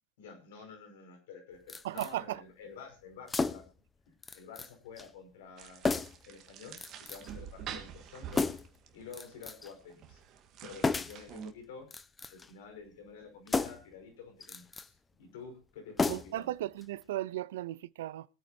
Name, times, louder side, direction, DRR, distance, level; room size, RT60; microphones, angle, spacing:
voice 1, 0.2-3.6 4.1-5.9 6.3-8.5 8.9-10.2 10.6-11.9 12.3-16.5, left 5 dB, 70° left, 5.6 m, -50 dB
sound 1, 1.7-2.1 3.3-3.8 4.2-4.7 5.0-5.1 5.8-6.3 6.8-7.3 8.3-8.8 9.1-9.7 10.8-11.2 11.8-12.5 13.5-13.9 14.4-14.9 16.0-16.5 16.8-16.9, left 4 dB, 15° left, 0.9 m, -33 dB
voice 2, 1.8-2.4 16.1-18.3, right 14 dB, 75° right, 0.6 m, -36 dB
sound 2, 5.6-11.5, right 8 dB, 45° right, 1.8 m, -47 dB
23.5 x 8.9 x 2.8 m
hypercardioid pair, 100°, 0 cm